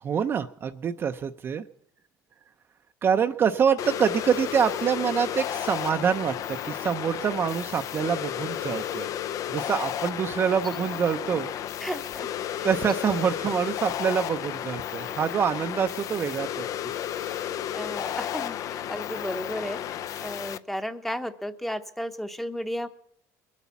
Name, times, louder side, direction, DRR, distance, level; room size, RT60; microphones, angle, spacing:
voice 1, 0.0-1.7 3.0-9.1 9.5-11.5 12.6-16.7, right 7 dB, 30° right, 7 dB, 0.6 m, -26 dB
sound 1, 3.8-20.6, left 10 dB, 50° left, 0.5 m, -33 dB
voice 2, 11.8-12.3 12.6-12.7 17.7-22.9, equal, 5° left, 9 dB, 0.9 m, -34 dB
22.0 x 8.3 x 7.0 m, 0.68 s
cardioid pair, 140°, 7 cm